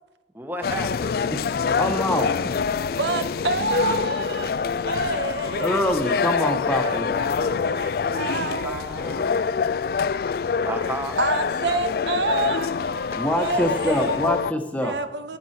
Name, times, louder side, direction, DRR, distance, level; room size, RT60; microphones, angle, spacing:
voice 1, 0.3-1.1 6.8-9.6 10.6-11.2, right 1 dB, 10° right, 1.2 m, -35 dB
sound 1, 0.6-14.5, left 6 dB, 55° left, 0.3 m, -25 dB
voice 2, 1.8-2.5 5.6-7.1 13.2-14.9, left 1 dB, 10° left, 1.2 m, -25 dB
voice 3, 3.0-6.2 6.7-8.9 11.2-14.2 14.7-15.4, right 3 dB, 75° right, 0.8 m, -29 dB
19.0 x 7.8 x 4.4 m
head